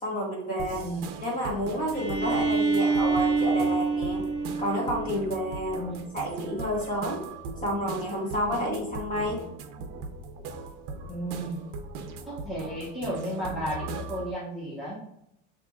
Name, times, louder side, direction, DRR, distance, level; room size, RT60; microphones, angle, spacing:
voice 1, 0.0-0.8 1.2-4.2 4.6-5.8 6.1-7.2 7.6-9.5, equal, 20° left, -2 dB, 1.1 m, -30 dB
sound 1, 0.6-14.3, right 3 dB, 60° right, 0.6 m, -39 dB
Bowed string instrument, 1.9-5.7, right 4 dB, 30° right, 1.4 m, -27 dB
voice 2, 11.1-11.6 12.3-15.0, right 1 dB, ahead, -8 dB, 0.9 m, -34 dB
5.8 x 3.0 x 2.3 m, 0.79 s
cardioid pair, 165°, 37 cm